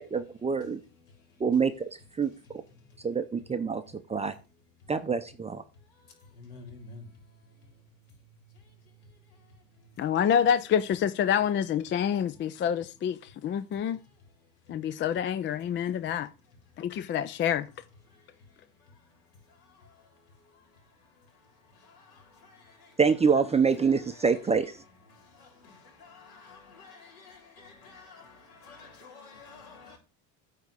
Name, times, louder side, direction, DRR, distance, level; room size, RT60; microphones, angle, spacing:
voice 1, 0.1-0.8 1.4-1.7 2.2-2.3 3.0-3.8 4.1-4.3 4.9-5.6 23.0-24.8, right 5 dB, 15° right, 0.6 m, -25 dB
voice 2, 10.0-14.0 14.7-16.3 16.8-17.7, left 8 dB, 30° left, 0.4 m, -27 dB
voice 3, 27.9-28.2 28.7-30.0, left 3 dB, 70° left, 3.8 m, -48 dB
9.0 x 3.6 x 6.6 m
cardioid pair, 120°, 40 cm